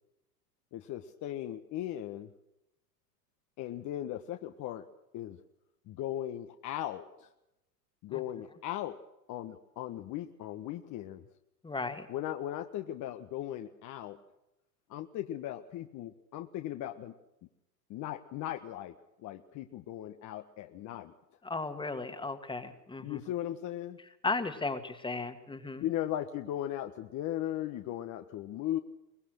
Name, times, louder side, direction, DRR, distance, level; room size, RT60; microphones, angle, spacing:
voice 1, 0.7-2.3 3.6-4.9 5.1-5.4 5.9-7.3 8.0-9.0 9.3-11.2 12.1-14.2 14.9-17.1 17.9-18.9 19.2-21.1 23.0-24.0 25.8-28.8, left 12 dB, 35° left, 6 dB, 1.5 m, -37 dB
voice 2, 11.6-12.1 21.4-23.2 24.2-25.8, left 3 dB, 10° left, 9 dB, 2.0 m, -35 dB
23.5 x 20.5 x 6.6 m, 0.89 s
hypercardioid pair, 105°, 49 cm